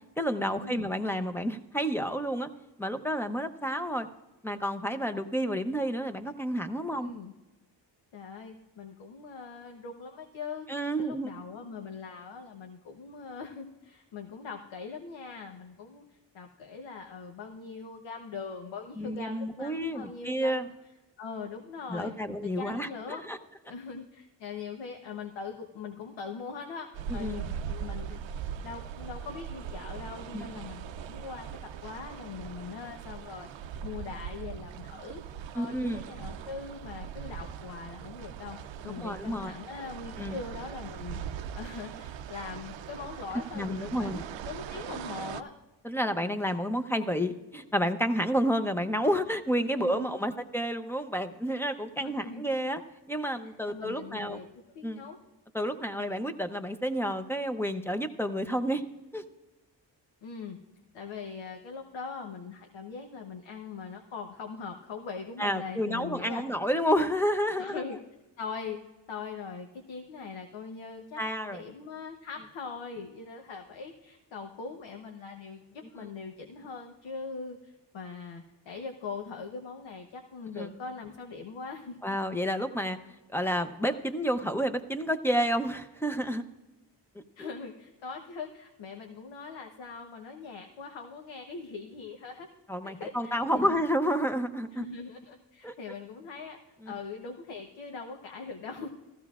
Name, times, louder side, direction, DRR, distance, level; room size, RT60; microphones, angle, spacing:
voice 1, 0.2-2.5 2.8-4.1 4.4-7.1 10.7-11.3 19.0-20.7 21.9-23.4 27.1-27.4 30.3-30.5 35.5-36.0 38.9-39.5 40.2-40.4 43.5-44.2 45.8-52.8 53.1-54.4 54.8-55.1 55.5-58.8 59.1-59.2 65.4-67.8 71.2-71.6 76.0-76.1 80.6-80.7 82.0-83.0 83.3-86.4 87.1-87.5 92.7-94.9 95.6-95.7 96.8-96.9, equal, 5° left, 7 dB, 0.6 m, -30 dB
voice 2, 7.0-7.3 8.1-10.7 11.0-16.0 16.3-20.7 21.2-22.1 22.4-23.2 23.6-28.2 28.6-35.2 35.5-45.5 49.8-50.3 51.7-52.5 53.7-55.2 60.2-60.6 60.9-66.4 67.6-68.0 68.4-68.8 69.1-71.2 71.5-82.0 87.4-92.5 92.8-93.7 94.7-96.6 96.9-98.9, left 5 dB, 80° left, 3 dB, 1.0 m, -41 dB
sound 1, 26.9-45.4, right 8 dB, 80° right, 0.6 m, -40 dB
15.5 x 14.0 x 2.4 m, 1.1 s
cardioid pair, 90°, 44 cm